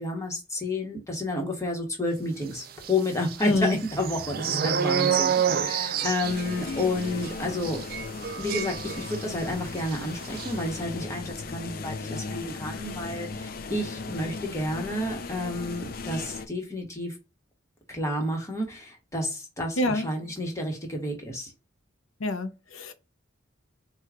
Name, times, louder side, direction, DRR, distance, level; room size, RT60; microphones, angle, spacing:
voice 1, 0.0-7.8 8.3-17.2 17.9-21.5, left 1 dB, 15° left, 1.2 m, -31 dB
sound 1, 2.8-9.5 9.8-10.0 10.2-10.5, right 8 dB, 45° right, 0.4 m, -29 dB
voice 2, 3.4-3.8 19.8-20.1 22.2-22.9, left 2 dB, 90° left, 0.7 m, -26 dB
sound 2, 6.2-16.5, left 4 dB, 45° left, 0.4 m, -37 dB
4.5 x 2.3 x 3.6 m
head